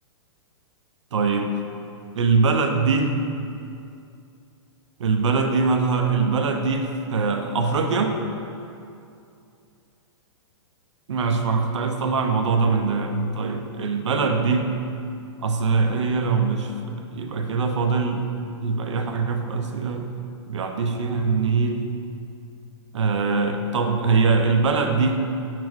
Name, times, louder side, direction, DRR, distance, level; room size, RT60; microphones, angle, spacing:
voice 1, 1.1-1.5 2.1-3.1 5.0-8.2 11.1-14.7 15.4-18.3 18.6-20.1 20.5-21.9 22.9-25.3, right 4 dB, 75° right, 5 dB, 0.8 m, -22 dB
5.9 x 4.6 x 6.1 m, 2.5 s
hypercardioid pair, 140°, 15 cm